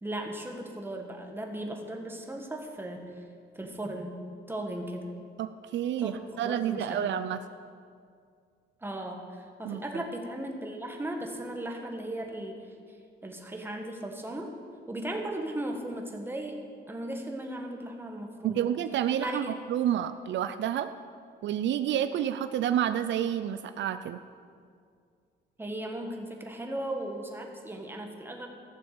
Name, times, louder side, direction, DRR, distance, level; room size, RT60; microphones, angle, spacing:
voice 1, 0.0-3.2 3.5-4.2 4.5-5.1 6.0-7.0 8.8-12.6 12.9-13.0 13.2-14.5 14.9-16.6 16.9-18.7 19.2-19.5 25.6-28.5, right 1 dB, 10° right, 2 dB, 1.4 m, -37 dB
voice 2, 5.4-7.4 9.6-10.0 18.4-20.9 21.4-24.2, right 10 dB, 70° right, 11 dB, 0.5 m, -29 dB
15.0 x 7.0 x 6.7 m, 2.2 s
cardioid pair, 125°, 19 cm